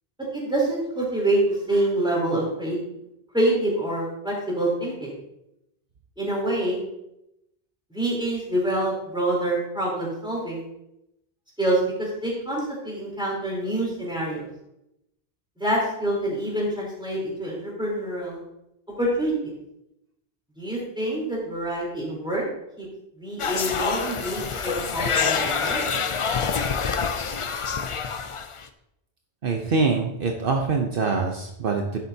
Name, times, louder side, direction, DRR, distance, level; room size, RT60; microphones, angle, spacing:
voice 1, 0.3-2.8 3.3-5.1 6.2-6.8 7.9-10.6 11.6-14.5 15.6-18.4 19.0-19.5 20.6-22.4 22.8-22.9 23.2-25.8, right 1 dB, 5° right, -4 dB, 3.6 m, -26 dB
sound 1, 23.4-28.7, left 5 dB, 40° left, 0.5 m, -26 dB
voice 2, 29.4-32.0, right 4 dB, 60° right, 2 dB, 1.0 m, -24 dB
10.5 x 8.3 x 2.8 m, 0.84 s
omnidirectional pair, 1.0 m